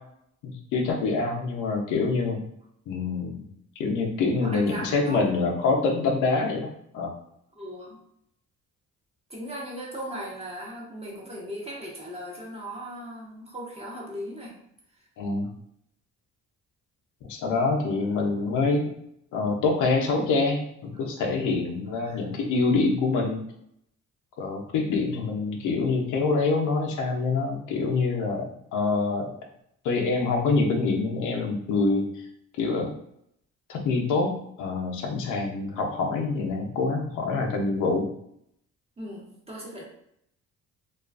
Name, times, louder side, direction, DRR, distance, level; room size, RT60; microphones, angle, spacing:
voice 1, 0.4-2.4 2.9-3.4 3.8-6.7 6.9-7.1 15.2-15.5 17.3-19.0 19.3-23.4 24.4-29.3 29.8-32.1 32.6-32.9 33.7-34.3 34.6-38.1, left 3 dB, 80° left, 2 dB, 0.6 m, -25 dB
voice 2, 4.4-5.4 7.6-8.0 9.3-14.5 22.0-22.2 25.0-25.2 39.0-39.8, equal, 20° right, -4 dB, 0.9 m, -38 dB
2.3 x 2.3 x 2.3 m, 0.73 s
cardioid pair, 90°, 30 cm